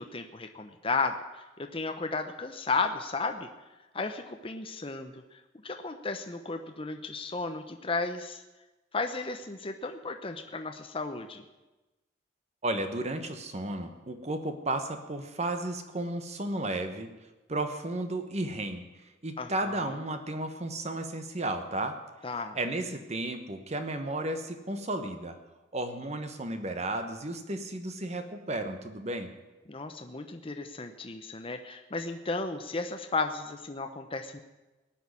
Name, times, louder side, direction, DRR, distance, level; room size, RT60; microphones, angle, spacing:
voice 1, 0.0-3.5 3.9-8.4 8.9-11.4 19.4-20.0 22.2-22.6 29.7-34.4, left 3 dB, 30° left, 6 dB, 0.8 m, -34 dB
voice 2, 12.6-17.1 17.5-18.8 19.2-22.0 22.5-25.4 25.7-29.3, right 2 dB, 35° right, 7 dB, 1.1 m, -33 dB
18.5 x 6.5 x 9.6 m, 1.1 s
head